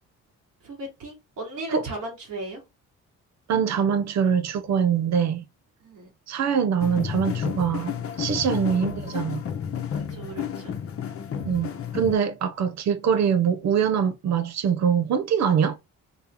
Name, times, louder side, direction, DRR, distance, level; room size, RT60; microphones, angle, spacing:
voice 1, 0.6-2.6 5.8-6.1 8.7-8.8 10.1-10.8, right 2 dB, 80° right, 2.6 m, -37 dB
voice 2, 3.5-5.4 6.3-9.4 11.5-15.8, right 7 dB, 65° right, 0.7 m, -23 dB
sound 1, 6.8-12.1, left 8 dB, 50° left, 0.9 m, -31 dB
4.1 x 2.8 x 3.7 m
cardioid pair, 90°, 30 cm